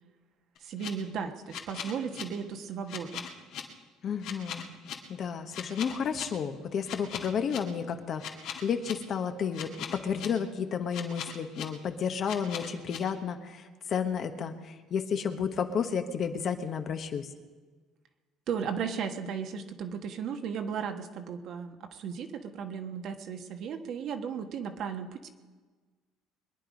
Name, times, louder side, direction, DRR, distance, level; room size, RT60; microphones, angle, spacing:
sound 1, 0.6-0.9 1.5-2.2 2.9-3.6 4.2-4.9 5.5-6.2 6.8-7.6 8.2-8.9 9.5-10.3 10.9-11.6 12.2-13.0, left 9 dB, 65° left, 2.2 m, -38 dB
voice 1, 0.6-3.3 18.5-25.3, right 7 dB, 55° right, 6 dB, 1.4 m, -35 dB
voice 2, 4.0-4.7 5.1-17.3, left 7 dB, 45° left, 7 dB, 1.2 m, -32 dB
23.0 x 10.5 x 5.2 m, 1.4 s
cardioid pair, 130°, 0 cm